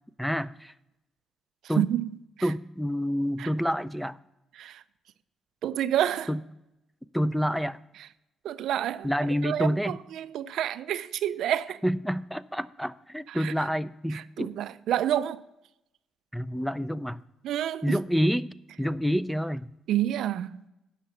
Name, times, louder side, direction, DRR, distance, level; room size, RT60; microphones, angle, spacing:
voice 1, 0.2-0.7 1.7-1.9 2.4-4.2 6.3-6.4 7.1-7.8 9.0-10.0 11.8-14.5 16.3-17.2 17.8-18.5 18.8-19.7, equal, ahead, 0.4 m, -28 dB
voice 2, 1.8-2.1 3.4-3.5 4.6-4.8 5.6-6.3 8.4-9.1 9.4-11.8 13.3-13.5 14.1-15.4 17.4-18.0 19.9-20.5, right 11 dB, 75° right, 0.4 m, -28 dB
10.0 x 5.7 x 6.5 m
cardioid pair, 90°, 0 cm